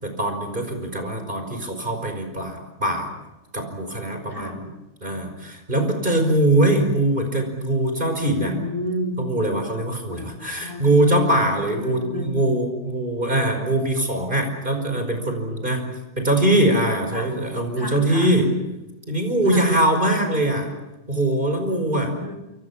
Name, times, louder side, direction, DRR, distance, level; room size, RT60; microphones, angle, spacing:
voice 1, 0.0-3.1 3.5-4.7 5.0-8.5 9.2-15.8 16.2-18.5 19.1-20.7 21.1-22.1, right 1 dB, 40° right, 5 dB, 5.4 m, -22 dB
voice 2, 4.3-4.6 8.3-9.2 10.1-10.9 11.7-12.4 17.1-17.3 17.8-18.3 19.4-19.7 21.7-22.3, left 1 dB, 15° left, 1 dB, 4.7 m, -32 dB
28.5 x 25.5 x 7.3 m, 0.97 s
omnidirectional pair, 1.3 m